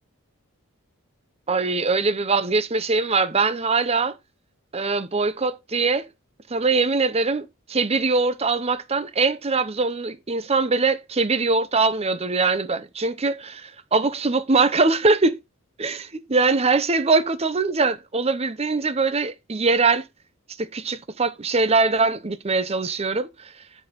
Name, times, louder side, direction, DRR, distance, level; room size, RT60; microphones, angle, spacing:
voice 1, 1.5-4.2 4.7-6.1 6.5-15.4 15.8-20.0 20.6-23.5, right 3 dB, 30° right, 0.7 m, -22 dB
10.5 x 4.2 x 5.3 m
head